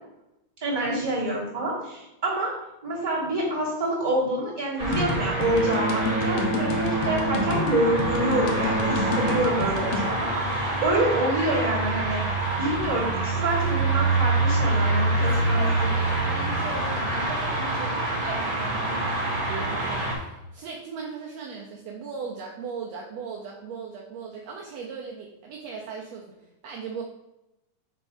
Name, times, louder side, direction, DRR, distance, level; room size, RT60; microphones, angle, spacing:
voice 1, 0.6-2.5 2.8-12.2 12.6-15.9, right 1 dB, 10° right, -8 dB, 2.0 m, -27 dB
sound 1, 4.8-20.2, right 2 dB, 30° right, 0.9 m, -26 dB
sound 2, 4.9-10.1, left 3 dB, 70° left, 1.6 m, -30 dB
Bowed string instrument, 5.4-10.8, right 2 dB, 45° right, 1.4 m, -29 dB
voice 2, 15.2-26.3 26.6-27.0, right 5 dB, 75° right, -1 dB, 1.7 m, -38 dB
5.5 x 3.6 x 5.4 m, 0.92 s
omnidirectional pair, 3.4 m